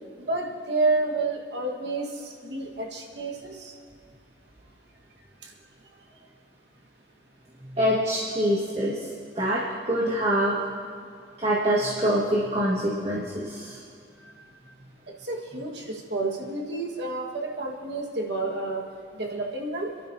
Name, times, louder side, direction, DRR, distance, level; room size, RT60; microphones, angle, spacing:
voice 1, 0.3-3.7 5.4-5.5 15.2-18.8 19.1-19.9, right 2 dB, 70° right, 0 dB, 1.5 m, -29 dB
voice 2, 7.6-9.1 9.3-10.5 11.4-13.8, equal, 35° right, -7 dB, 1.7 m, -25 dB
27.5 x 11.5 x 2.7 m, 2.2 s
head